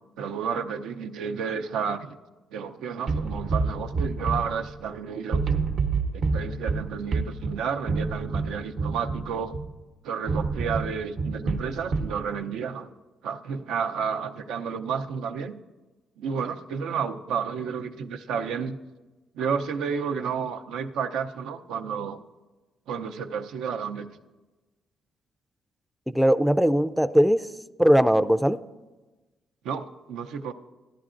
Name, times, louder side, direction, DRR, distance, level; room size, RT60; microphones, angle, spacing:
voice 1, 0.2-2.2 2.5-5.4 6.1-9.5 10.0-12.9 13.2-15.6 16.2-18.8 19.3-22.2 22.9-24.1 29.6-30.5, right 6 dB, 90° right, 5 dB, 0.6 m, -31 dB
sound 1, 3.1-5.0 5.3-9.8 10.3-12.2, right 4 dB, 60° right, 0.8 m, -28 dB
voice 2, 26.1-27.4 27.8-28.6, equal, ahead, 11 dB, 0.3 m, -20 dB
14.5 x 10.5 x 2.5 m, 1.2 s
cardioid pair, 90°, 0 cm